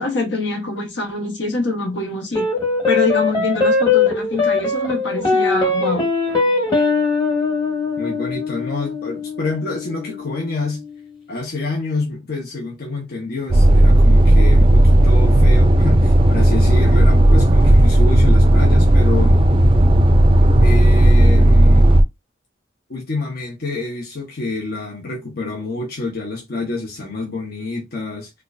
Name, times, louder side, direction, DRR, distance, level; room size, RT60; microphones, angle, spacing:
voice 1, 0.0-2.5 2.9-6.1, left 2 dB, 80° left, 1.3 m, -24 dB
sound 1, 2.3-11.0, left 4 dB, 25° left, 1.2 m, -21 dB
voice 2, 8.0-10.8 11.3-19.4 20.6-21.9 22.9-28.3, left 3 dB, 55° left, 0.8 m, -27 dB
sound 2, 13.5-22.0, right 1 dB, 30° right, 0.4 m, -12 dB
4.4 x 2.3 x 2.5 m
head